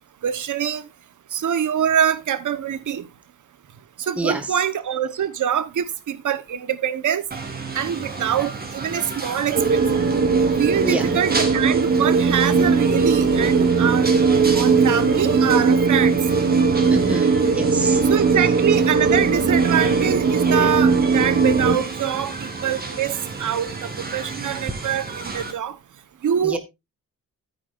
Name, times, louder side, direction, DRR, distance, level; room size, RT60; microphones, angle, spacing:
voice 1, 0.2-0.8 1.3-3.1 4.0-7.2 7.7-9.8 10.6-16.2 18.1-23.1 23.4-25.8 26.2-26.6, right 9 dB, 60° right, 1.0 m, -24 dB
voice 2, 4.2-4.6 10.8-11.1 16.9-18.0 26.4-26.6, right 2 dB, 5° right, 0.9 m, -27 dB
sound 1, 7.3-25.5, right 3 dB, 25° right, 2.3 m, -32 dB
sound 2, 9.5-21.8, right 4 dB, 45° right, 1.4 m, -19 dB
14.0 x 9.2 x 2.5 m
wide cardioid pair, 165°, 34 cm